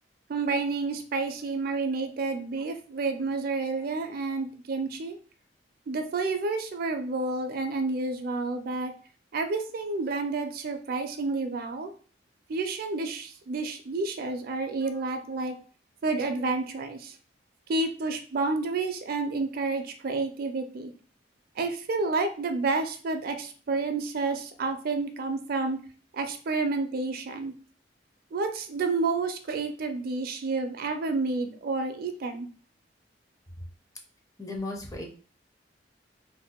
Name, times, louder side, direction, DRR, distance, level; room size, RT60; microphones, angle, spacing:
voice 1, 0.3-5.2 5.9-8.9 9.3-11.9 12.5-15.5 16.0-17.1 17.7-20.9 21.6-25.8 26.1-27.5 28.3-32.5, right 3 dB, 55° right, 6 dB, 0.4 m, -30 dB
voice 2, 34.4-35.0, left 2 dB, 20° left, 1 dB, 0.5 m, -35 dB
2.6 x 2.1 x 3.6 m, 0.40 s
head